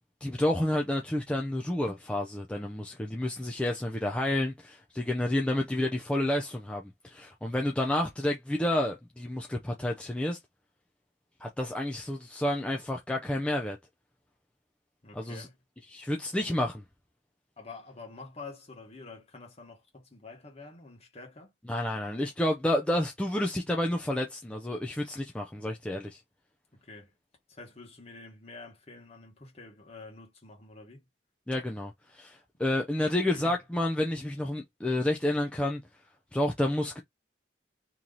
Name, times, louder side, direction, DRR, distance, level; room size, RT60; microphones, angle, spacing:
voice 1, 0.2-10.4 11.4-13.8 15.1-15.5 15.9-16.8 21.7-26.2 31.5-35.8 36.3-37.0, left 1 dB, 5° left, 0.4 m, -30 dB
voice 2, 15.0-15.6 17.6-21.5 26.7-27.1 27.5-31.0 33.3-33.6, left 3 dB, 35° left, 1.4 m, -47 dB
3.0 x 2.7 x 3.8 m
head